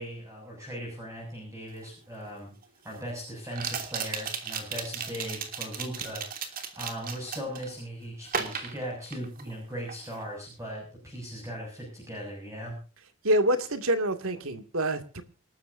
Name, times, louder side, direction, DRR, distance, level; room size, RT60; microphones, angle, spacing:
voice 1, 0.0-2.5 2.8-12.8, equal, 15° right, -1 dB, 7.1 m, -38 dB
sound 1, 1.8-1.9 3.5-7.7 8.3-9.6 9.9-10.2, right 6 dB, 40° right, 2.9 m, -35 dB
voice 2, 13.2-15.2, right 1 dB, 70° right, 7 dB, 2.5 m, -26 dB
28.0 x 13.5 x 2.7 m, 0.37 s
head